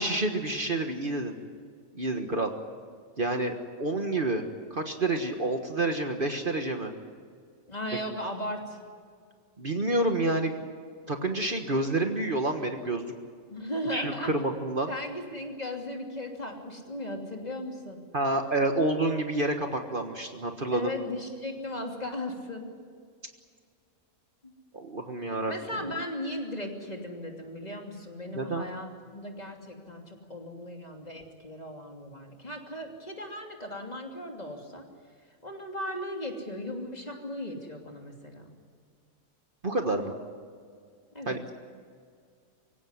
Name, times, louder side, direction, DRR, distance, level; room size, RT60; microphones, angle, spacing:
voice 1, 0.0-1.4 2.0-2.5 3.2-4.4 4.7-6.9 9.6-10.7 11.1-13.1 13.9-14.9 18.1-20.9 24.7-25.5 28.3-28.7 39.6-40.1 41.3-41.5, right 2 dB, 40° right, 5 dB, 1.6 m, -28 dB
voice 2, 7.7-8.8 13.5-14.3 14.9-18.0 20.7-22.7 24.4-24.5 25.5-34.8 35.4-38.5 41.1-41.5, left 1 dB, 30° left, 1 dB, 3.1 m, -37 dB
24.5 x 16.5 x 9.7 m, 2.1 s
omnidirectional pair, 1.4 m